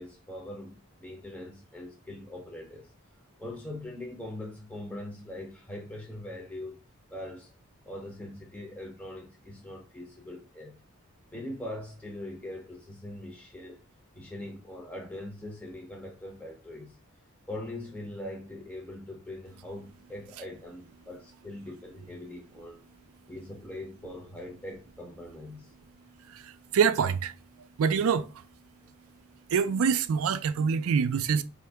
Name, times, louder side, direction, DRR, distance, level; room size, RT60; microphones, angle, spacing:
voice 1, 0.0-2.9 3.4-6.8 7.1-7.5 7.9-10.8 11.3-13.8 14.2-17.0 17.5-22.8 23.3-25.7, left 1 dB, 5° left, 0.5 m, -42 dB
voice 2, 26.3-27.3 27.8-28.3 29.5-31.4, right 6 dB, 75° right, 0.4 m, -25 dB
4.6 x 2.5 x 3.3 m
head